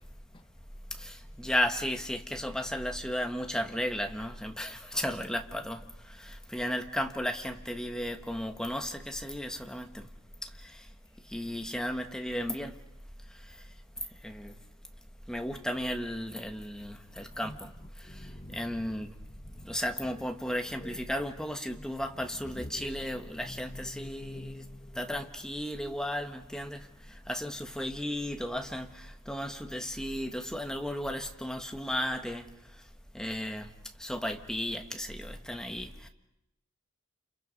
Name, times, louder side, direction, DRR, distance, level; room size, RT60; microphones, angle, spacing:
voice 1, 1.0-5.8 6.1-10.1 10.4-10.8 11.3-12.7 14.2-14.5 15.3-17.7 18.1-18.2 18.5-19.1 19.6-24.6 24.9-26.9 27.3-32.5 33.1-33.7 34.0-36.1, equal, 5° left, 1.4 m, -34 dB
voice 2, 17.4-19.1 19.6-20.3 20.8-21.0 22.4-22.9 23.4-25.3, left 1 dB, 25° left, 1.1 m, -46 dB
29.5 x 29.0 x 5.4 m
head